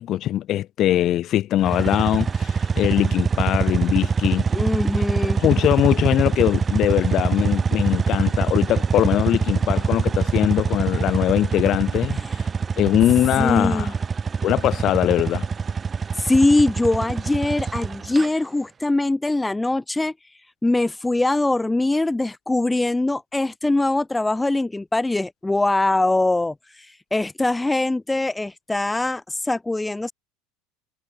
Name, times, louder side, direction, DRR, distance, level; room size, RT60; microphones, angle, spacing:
voice 1, 0.0-4.4 5.4-12.2 12.8-13.9 14.4-15.5, left 13 dB, 45° left, 1.8 m, -21 dB
sound 1, 1.6-18.3, right 5 dB, 25° right, 0.9 m, -24 dB
voice 2, 4.5-5.4 12.1-12.4 13.4-13.9 16.1-30.1, left 2 dB, 10° left, 0.6 m, -22 dB
hypercardioid pair, 70°, 0 cm